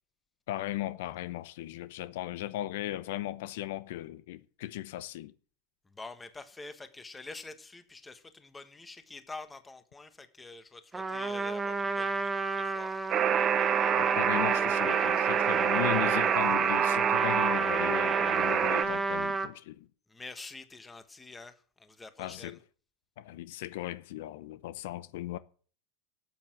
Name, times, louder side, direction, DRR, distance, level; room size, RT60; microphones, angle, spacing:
voice 1, 0.5-5.3 13.9-19.9 22.2-22.6 23.2-25.4, left 14 dB, 75° left, 0.8 m, -37 dB
voice 2, 5.9-12.3 12.6-12.9 20.1-22.5, left 3 dB, 10° left, 1.4 m, -46 dB
Trumpet, 10.9-19.5, right 3 dB, 10° right, 1.4 m, -31 dB
Alarm, 13.1-18.8, right 9 dB, 35° right, 0.9 m, -27 dB
13.5 x 8.2 x 7.8 m
supercardioid pair, 145°, 0 cm